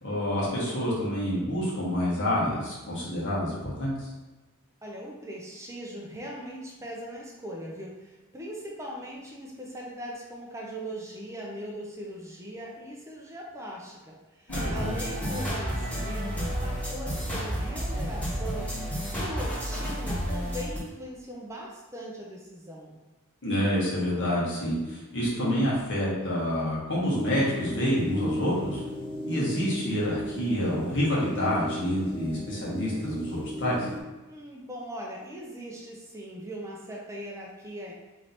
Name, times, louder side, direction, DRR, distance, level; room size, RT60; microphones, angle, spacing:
voice 1, 0.0-4.1 14.5-14.9 23.4-28.8 29.3-33.9, equal, 55° left, -6 dB, 1.5 m, -28 dB
voice 2, 4.8-18.7 19.1-23.0 34.3-37.9, equal, 15° right, -2 dB, 0.5 m, -40 dB
sound 1, 14.5-20.8, equal, 5° left, 1.4 m, -31 dB
sound 2, 27.1-34.0, equal, 25° left, 0.7 m, -36 dB
3.2 x 2.9 x 4.0 m, 1.1 s
head